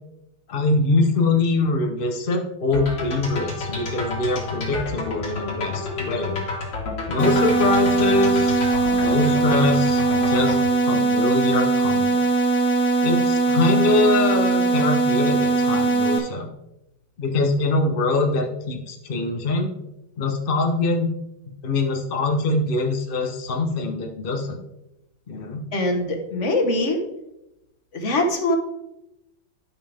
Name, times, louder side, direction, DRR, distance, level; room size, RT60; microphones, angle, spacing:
voice 1, 0.5-6.4 7.1-10.6 10.9-12.2 13.0-16.5 17.2-19.7 20.2-21.1 21.6-24.6 25.3-25.6, left 2 dB, 90° left, 2 dB, 0.4 m, -23 dB
sound 1, 2.7-10.6, left 3 dB, 55° left, 2.5 m, -31 dB
sound 2, 7.2-16.2, right 3 dB, 5° left, 0.9 m, -20 dB
voice 2, 25.7-27.0 27.9-28.6, left 1 dB, 40° left, 3 dB, 1.2 m, -22 dB
11.0 x 5.4 x 3.4 m, 0.90 s
omnidirectional pair, 2.4 m